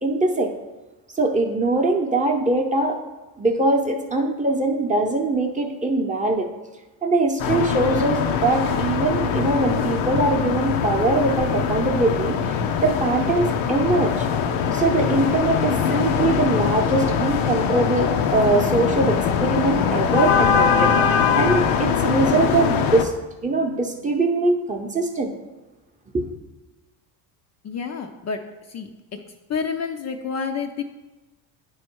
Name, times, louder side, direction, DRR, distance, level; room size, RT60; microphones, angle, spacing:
voice 1, 0.0-0.5 1.2-3.0 3.4-6.5 7.0-14.3 14.7-23.1 23.4-25.3 26.1-26.3, right 2 dB, 15° right, 1 dB, 0.7 m, -22 dB
sound 1, 7.4-23.0, left 7 dB, 85° left, 0.7 m, -22 dB
voice 2, 27.6-29.2 29.5-30.8, left 5 dB, 40° left, 5 dB, 0.5 m, -29 dB
9.2 x 3.2 x 4.5 m, 1.1 s
cardioid pair, 100°, 45 cm